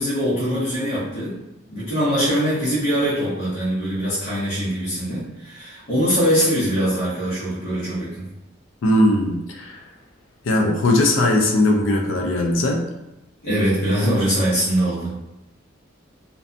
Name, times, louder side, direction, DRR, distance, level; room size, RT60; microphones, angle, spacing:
voice 1, 0.0-1.4 1.7-8.3 13.4-15.1, equal, 70° left, -10 dB, 0.9 m, -22 dB
voice 2, 8.8-9.8 10.5-12.8, left 1 dB, 85° left, 2 dB, 0.4 m, -19 dB
2.5 x 2.2 x 2.5 m, 0.94 s
head